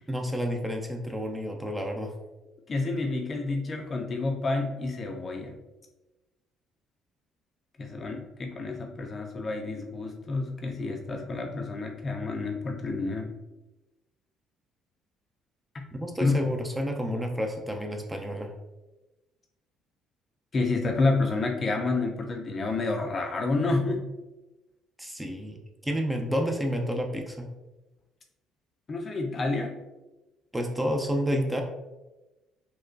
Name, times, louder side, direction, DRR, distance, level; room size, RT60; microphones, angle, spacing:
voice 1, 0.1-2.1 15.9-18.5 25.0-27.5 30.5-31.6, equal, 10° right, 2 dB, 0.6 m, -30 dB
voice 2, 2.7-5.5 7.8-13.4 15.7-15.8 16.2-16.3 20.5-24.1 28.9-29.8, left 3 dB, 40° left, 2 dB, 0.6 m, -29 dB
4.2 x 2.2 x 2.5 m, 1.1 s
hypercardioid pair, 55°, 0 cm